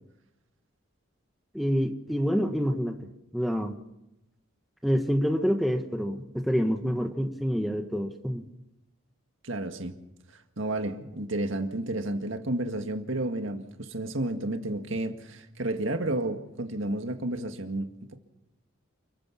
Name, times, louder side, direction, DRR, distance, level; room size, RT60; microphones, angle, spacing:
voice 1, 1.5-3.1 3.3-3.8 4.8-8.5, equal, ahead, 4 dB, 1.5 m, -27 dB
voice 2, 9.4-9.9 10.6-17.9, right 1 dB, 65° right, 6 dB, 1.9 m, -31 dB
29.0 x 14.5 x 7.2 m, 0.88 s
head